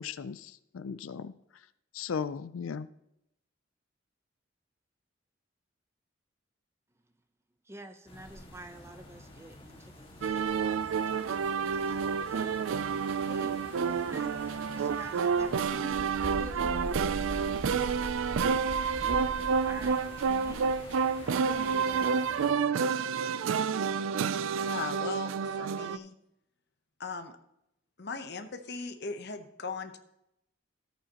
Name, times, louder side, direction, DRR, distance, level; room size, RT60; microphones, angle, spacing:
voice 1, 0.0-1.3 1.9-2.9, left 6 dB, 90° left, 15 dB, 0.4 m, -36 dB
voice 2, 7.6-10.5 11.1-12.5 13.0-16.8 19.6-20.7 21.1-22.1, right 1 dB, 15° right, 8 dB, 0.7 m, -48 dB
sound 1, 8.1-22.5, equal, 30° left, 1.8 m, -44 dB
sound 2, 10.2-26.0, right 6 dB, 85° right, 0.4 m, -29 dB
voice 3, 24.7-26.1 27.0-27.4 28.0-30.0, left 4 dB, 55° left, 8 dB, 0.9 m, -38 dB
13.5 x 8.8 x 2.9 m, 0.82 s
head